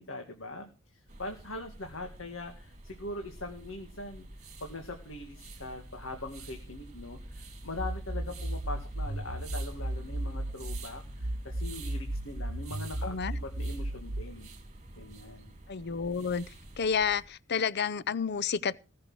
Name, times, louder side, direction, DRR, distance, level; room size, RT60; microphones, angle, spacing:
voice 1, 0.0-4.3 4.6-14.5 15.0-15.5, left 2 dB, 70° left, 2.1 m, -42 dB
sound 1, 1.1-17.3, right 2 dB, 35° right, 2.6 m, -48 dB
sound 2, 7.8-10.8 11.2-14.2, right 1 dB, 55° right, 1.2 m, -35 dB
voice 2, 13.0-13.3 15.7-16.5 16.8-18.8, left 6 dB, 55° left, 0.6 m, -30 dB
19.0 x 6.5 x 6.2 m
head